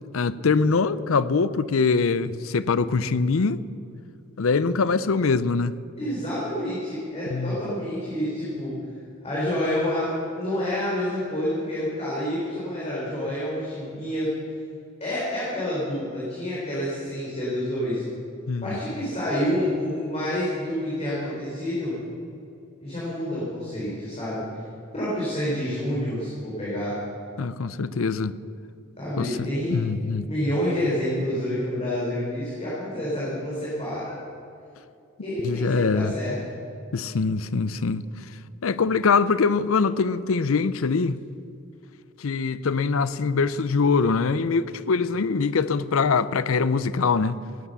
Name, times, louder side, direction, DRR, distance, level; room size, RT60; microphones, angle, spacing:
voice 1, 0.1-3.6 4.4-5.7 7.3-7.6 18.5-18.8 27.4-28.4 29.2-30.3 35.4-36.1 36.9-38.0 38.6-41.2 42.2-47.4, left 4 dB, 80° left, 0.6 m, -23 dB
voice 2, 5.9-8.7 9.2-14.3 15.0-18.0 18.6-21.9 22.8-24.4 24.9-27.0 29.0-29.8 30.3-34.2 35.2-36.3, left 1 dB, 30° left, 4.2 m, -28 dB
18.5 x 9.8 x 6.9 m
head